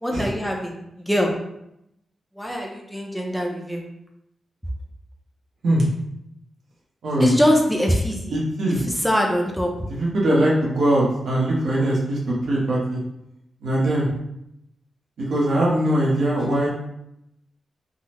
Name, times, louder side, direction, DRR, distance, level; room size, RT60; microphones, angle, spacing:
voice 1, 0.0-1.3 2.4-3.8 7.2-8.4 8.7-9.7, equal, ahead, 0 dB, 0.5 m, -22 dB
voice 2, 8.3-8.8 9.9-13.0 13.6-14.1 15.2-16.7, right 1 dB, 75° right, -5 dB, 0.9 m, -21 dB
3.7 x 2.0 x 2.9 m, 0.82 s
wide cardioid pair, 145°, 0 cm